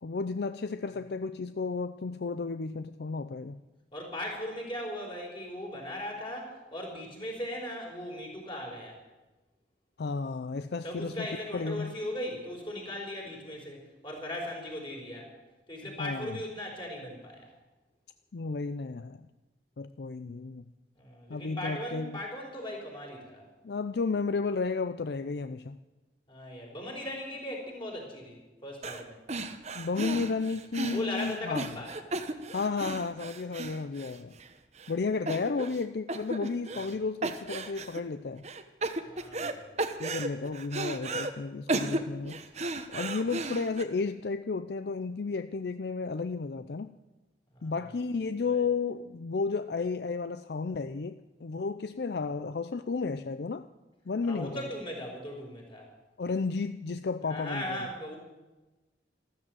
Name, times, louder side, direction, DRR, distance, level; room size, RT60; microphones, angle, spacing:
voice 1, 0.0-3.6 10.0-11.3 11.5-11.9 16.0-16.4 18.3-19.2 19.8-20.6 21.3-22.2 23.6-25.8 29.7-31.7 32.5-34.4 34.9-38.5 40.0-42.4 42.9-47.0 47.6-53.7 54.1-54.6 56.2-57.8, left 4 dB, 65° left, 11 dB, 0.5 m, -33 dB
voice 2, 3.9-9.0 10.8-13.8 14.0-15.3 15.7-17.5 21.0-23.4 26.3-29.2 30.9-31.9 39.0-40.0 47.5-47.8 48.4-48.7 54.2-55.9 57.2-58.2, left 1 dB, 30° left, -1 dB, 4.8 m, -38 dB
sound 1, 28.8-29.0 29.3-34.5 34.8-34.9 35.3-35.8 36.1-36.9 37.2-38.0 38.4-39.5 39.8-41.3 41.7-43.8, right 2 dB, 40° right, 1.1 m, -34 dB
13.5 x 13.5 x 7.9 m, 1.1 s
head